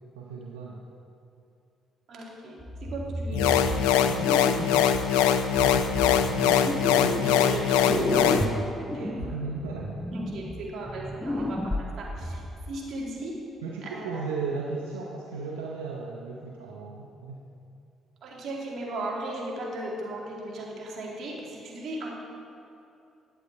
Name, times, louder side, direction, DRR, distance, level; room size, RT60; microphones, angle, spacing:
voice 1, 0.2-0.8 5.6-7.7 8.1-8.2 9.0-10.0 13.6-17.4, right 4 dB, 90° right, -3 dB, 0.7 m, -36 dB
voice 2, 2.1-4.3 7.2-9.2 10.1-12.4 12.7-13.3 13.8-14.2 18.2-22.1, right 1 dB, 60° right, -3 dB, 2.4 m, -37 dB
sound 1, 2.6-5.1 5.5-7.6 7.9-12.7, left 1 dB, 5° left, 0.9 m, -32 dB
sound 2, 3.3-8.4, left 8 dB, 80° left, 0.4 m, -22 dB
11.0 x 7.9 x 4.5 m, 2.7 s
hypercardioid pair, 50°, 0 cm